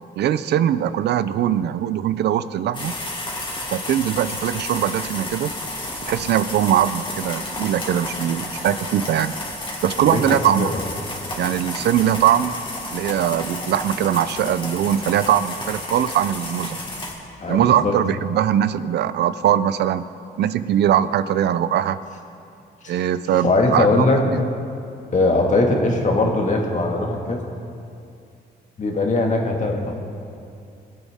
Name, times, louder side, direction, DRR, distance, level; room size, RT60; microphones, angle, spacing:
voice 1, 0.2-2.9 3.7-5.5 6.1-9.3 9.8-10.7 11.4-12.6 12.9-16.8 17.5-20.1 20.4-22.0 22.9-24.1, right 10 dB, 75° right, 14 dB, 0.5 m, -21 dB
sound 1, 2.7-17.1, left 1 dB, 30° left, 2.8 m, -31 dB
voice 2, 17.4-17.9 22.8-22.9 23.4-24.2 25.1-27.4 28.8-29.9, left 2 dB, 45° left, 1 dB, 1.9 m, -20 dB
20.5 x 8.4 x 3.6 m, 2.5 s
cardioid pair, 105°, 17 cm